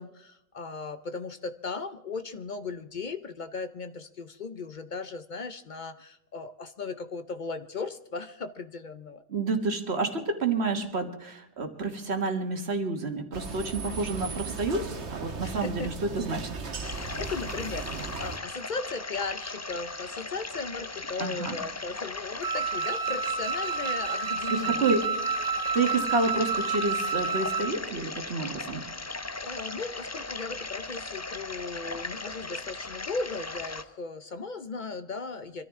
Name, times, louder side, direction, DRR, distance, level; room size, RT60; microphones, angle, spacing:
voice 1, 0.0-9.2 15.4-15.9 16.8-24.9 29.0-35.6, left 4 dB, 50° left, 10 dB, 0.7 m, -37 dB
voice 2, 9.3-16.5 21.2-21.6 24.5-25.0 25.7-28.8, right 3 dB, 70° right, 6 dB, 1.8 m, -29 dB
sound 1, 13.3-18.4, right 4 dB, 90° right, 1.6 m, -37 dB
sound 2, 16.8-33.8, left 3 dB, 25° left, 0.4 m, -38 dB
Wind instrument woodwind instrument, 22.4-27.8, right 4 dB, 25° right, 0.6 m, -30 dB
24.5 x 13.5 x 3.6 m, 0.79 s
omnidirectional pair, 1.1 m